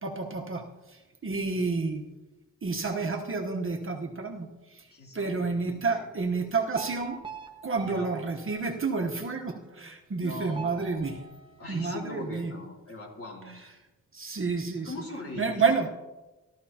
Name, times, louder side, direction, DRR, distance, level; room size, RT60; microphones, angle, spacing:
voice 1, 0.0-2.0 2.6-4.9 5.1-7.2 7.6-11.2 11.7-12.5 14.1-14.9 15.4-15.9, right 4 dB, 35° right, 2 dB, 1.0 m, -30 dB
voice 2, 4.9-6.1 7.8-8.1 10.2-11.1 11.6-13.7 14.8-15.7, left 2 dB, 40° left, -2 dB, 3.0 m, -41 dB
sound 1, 6.7-9.4 10.5-12.3, right 5 dB, 15° right, 0.7 m, -45 dB
15.0 x 13.0 x 2.8 m, 1.1 s
wide cardioid pair, 170°, 35 cm